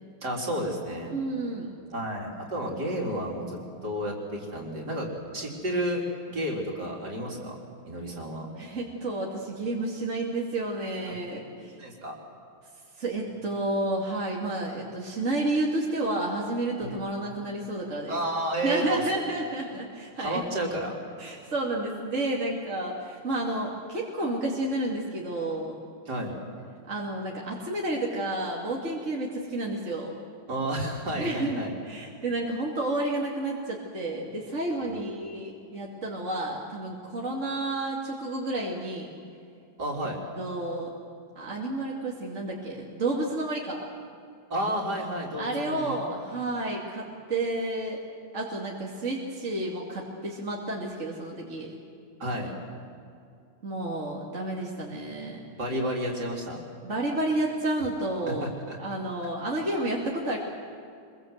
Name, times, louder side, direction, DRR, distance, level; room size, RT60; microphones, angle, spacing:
voice 1, 0.2-1.1 1.9-5.1 5.3-6.0 6.3-7.6 7.9-8.5 11.6-12.2 16.8-17.0 18.1-19.0 19.6-19.7 20.2-21.0 26.1-26.3 30.5-31.7 34.8-35.0 39.8-40.2 44.5-46.0 52.2-52.5 55.6-56.6 58.3-58.8, right 1 dB, 50° right, -1 dB, 4.4 m, -31 dB
voice 2, 1.1-1.7 8.5-11.8 13.0-18.2 18.6-20.4 21.2-25.8 26.9-30.1 31.1-39.1 40.4-40.9 41.3-43.8 45.4-48.0 48.3-51.7 53.6-55.4 56.8-58.5 58.8-60.4, right 2 dB, 35° right, -3 dB, 2.8 m, -31 dB
25.5 x 22.5 x 8.1 m, 2.5 s
omnidirectional pair, 2.4 m